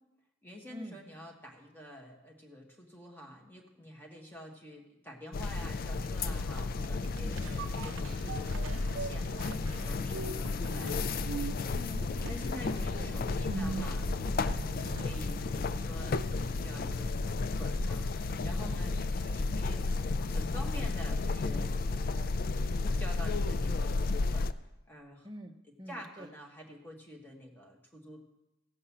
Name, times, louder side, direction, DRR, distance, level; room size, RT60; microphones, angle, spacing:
voice 1, 0.4-11.8 12.2-21.7 22.0-22.4 23.0-24.5 24.9-25.3 25.9-28.2, equal, 10° left, 0 dB, 1.6 m, -48 dB
sound 1, 5.3-24.5, left 3 dB, 45° left, 0.3 m, -33 dB
sound 2, 6.8-15.4 15.8-15.9, right 5 dB, 75° right, 0.5 m, -43 dB
voice 2, 11.7-12.3 12.7-13.2 18.6-18.9 25.2-26.3, equal, 20° right, 3 dB, 0.8 m, -46 dB
sound 3, 12.9-19.0, equal, 75° left, 1.1 m, -45 dB
16.0 x 5.4 x 7.2 m, 0.93 s
head